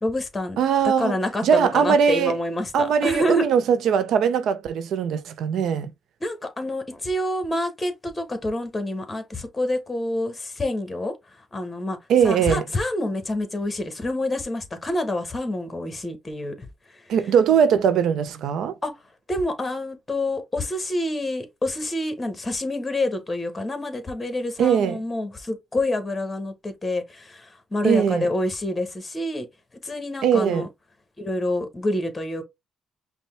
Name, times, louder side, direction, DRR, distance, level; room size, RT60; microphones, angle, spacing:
voice 1, 0.0-0.6 0.8-3.5 6.2-12.0 12.2-17.1 18.8-19.0 19.3-29.5 29.8-30.7 31.2-32.4, left 1 dB, 20° left, 1.1 m, -27 dB
voice 2, 0.6-1.1 1.4-2.3 2.7-5.9 12.1-12.6 17.1-18.8 24.6-25.0 27.8-28.3 30.2-30.7, right 7 dB, 75° right, 0.5 m, -20 dB
5.3 x 2.2 x 3.2 m
cardioid pair, 90°, 0 cm